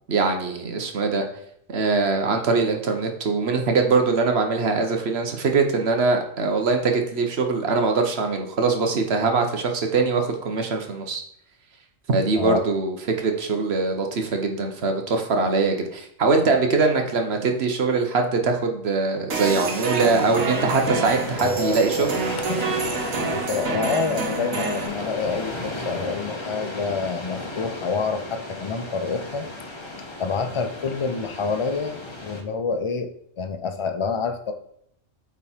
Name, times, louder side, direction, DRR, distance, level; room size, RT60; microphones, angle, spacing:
voice 1, 0.1-1.2 1.7-11.2 12.1-22.1, right 4 dB, 55° right, 4 dB, 1.2 m, -22 dB
sound 1, 19.3-24.9, right 4 dB, 85° right, 1.6 m, -27 dB
sound 2, 19.4-32.4, left 2 dB, 25° left, 0.9 m, -34 dB
voice 2, 21.4-22.6 23.3-29.5 30.2-34.5, left 5 dB, 50° left, 7 dB, 0.3 m, -28 dB
8.4 x 3.6 x 4.4 m, 0.71 s
omnidirectional pair, 1.3 m